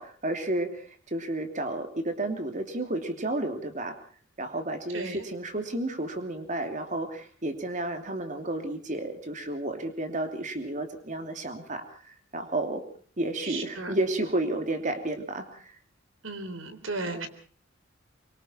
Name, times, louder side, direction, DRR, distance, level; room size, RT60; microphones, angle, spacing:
voice 1, 0.0-4.0 4.4-12.8 13.2-15.7 17.1-17.3, right 1 dB, 40° right, 6 dB, 3.0 m, -32 dB
voice 2, 4.9-5.3 13.4-14.0 16.2-17.3, right 2 dB, 80° right, 10 dB, 3.6 m, -35 dB
25.0 x 24.0 x 4.5 m, 0.43 s
head